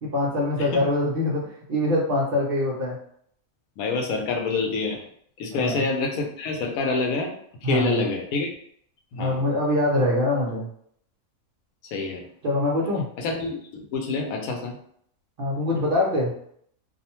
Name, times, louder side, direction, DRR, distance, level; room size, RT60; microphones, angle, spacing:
voice 1, 0.0-1.4 1.7-3.0 5.5-5.8 7.6-8.0 9.2-10.7 12.4-13.0 15.4-16.3, left 1 dB, 55° right, -4 dB, 0.7 m, -24 dB
voice 2, 3.8-5.0 5.4-7.3 7.6-8.5 9.1-9.4 11.9-12.2 13.2-14.8, left 3 dB, 85° left, 2 dB, 1.0 m, -27 dB
2.6 x 2.1 x 2.9 m, 0.65 s
omnidirectional pair, 1.4 m